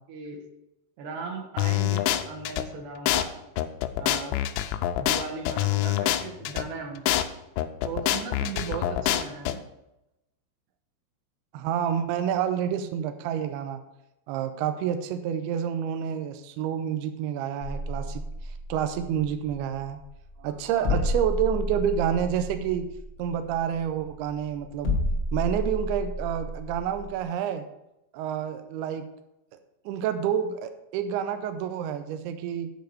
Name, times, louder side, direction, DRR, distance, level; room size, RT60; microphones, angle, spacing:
voice 1, 0.1-0.4 1.0-3.3 4.0-4.4 5.0-7.2 7.8-9.6 20.4-21.0, right 5 dB, 65° right, 1 dB, 3.3 m, -37 dB
sound 1, 1.6-2.6 3.1-3.2 3.6-6.6 7.1-7.2 7.6-9.5, left 13 dB, 90° left, 3.0 m, -25 dB
voice 2, 11.5-13.8 14.3-18.2 18.7-20.0 20.4-22.9 23.2-25.0 25.3-27.7 28.1-29.1 29.9-32.7, right 8 dB, 90° right, 8 dB, 2.3 m, -28 dB
sound 2, 17.6-27.2, left 1 dB, 65° left, 0.9 m, -32 dB
9.3 x 4.9 x 6.8 m, 0.90 s
omnidirectional pair, 5.3 m